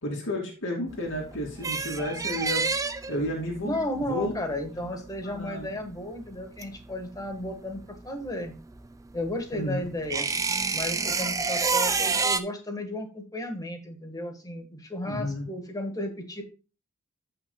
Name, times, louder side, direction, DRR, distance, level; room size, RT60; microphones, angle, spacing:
voice 1, 0.0-2.6 3.1-4.3 4.7-4.8 5.2-5.7 9.5-9.8 15.0-15.5, left 1 dB, 60° left, 0 dB, 2.6 m, -32 dB
sound 1, 0.9-7.5 7.7-12.4, right 4 dB, 15° right, 0.4 m, -28 dB
voice 2, 3.6-8.5 9.1-10.3 10.7-16.4, left 1 dB, 15° left, 5 dB, 1.4 m, -34 dB
14.5 x 5.6 x 2.3 m, 0.33 s
head